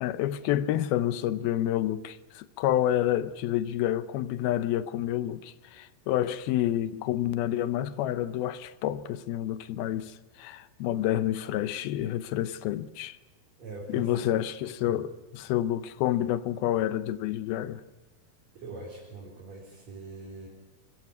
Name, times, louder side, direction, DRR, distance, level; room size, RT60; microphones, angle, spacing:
voice 1, 0.0-13.2 13.9-17.8, left 12 dB, 80° left, 2.6 m, -29 dB
voice 2, 13.6-14.1 14.9-15.0 18.5-20.5, right 3 dB, 45° right, 5.1 m, -42 dB
24.0 x 14.5 x 9.6 m
omnidirectional pair, 4.5 m